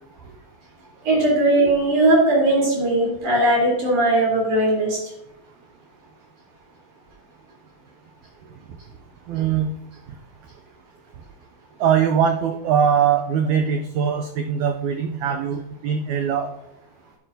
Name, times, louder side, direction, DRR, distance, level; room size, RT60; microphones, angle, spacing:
voice 1, 1.0-5.0, right 1 dB, 60° right, -3 dB, 5.0 m, -18 dB
voice 2, 9.3-9.7 11.8-16.5, right 7 dB, 85° right, 6 dB, 1.7 m, -21 dB
9.8 x 9.1 x 2.7 m, 0.90 s
omnidirectional pair, 4.1 m